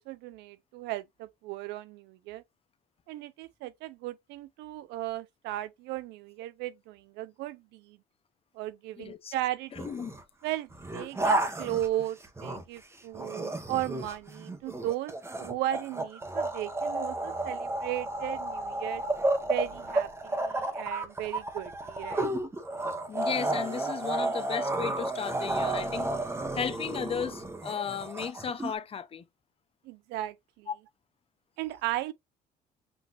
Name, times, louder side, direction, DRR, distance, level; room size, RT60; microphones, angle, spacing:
voice 1, 0.0-2.4 3.1-8.0 8.5-9.9 10.4-19.0 19.4-22.3 29.8-30.7 31.6-32.1, right 14 dB, 90° right, 0.5 m, -36 dB
voice 2, 9.0-9.3 9.7-10.1 23.1-26.1 26.5-29.2 30.7-30.8, left 7 dB, 35° left, 0.6 m, -35 dB
sound 1, 9.7-10.2 10.7-12.8 13.1-28.7, right 2 dB, 15° right, 1.0 m, -32 dB
6.1 x 3.2 x 2.4 m
cardioid pair, 110°, 17 cm